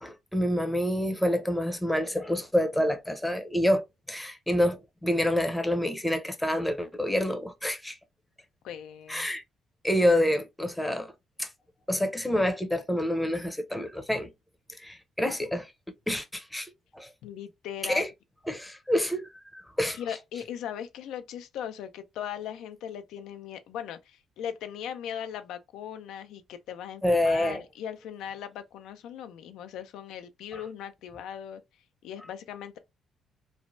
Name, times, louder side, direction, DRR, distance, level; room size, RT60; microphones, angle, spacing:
voice 1, 0.0-8.0 9.1-9.4 9.8-11.1 11.4-11.5 11.9-14.3 14.8-15.7 16.1-17.1 17.8-18.1 18.5-20.0 27.0-27.6 30.5-30.6, left 1 dB, 5° left, 0.6 m, -27 dB
voice 2, 8.6-9.3 17.2-18.1 19.9-31.6 32.0-32.8, left 9 dB, 85° left, 0.3 m, -39 dB
3.2 x 2.0 x 2.4 m
cardioid pair, 90°, 0 cm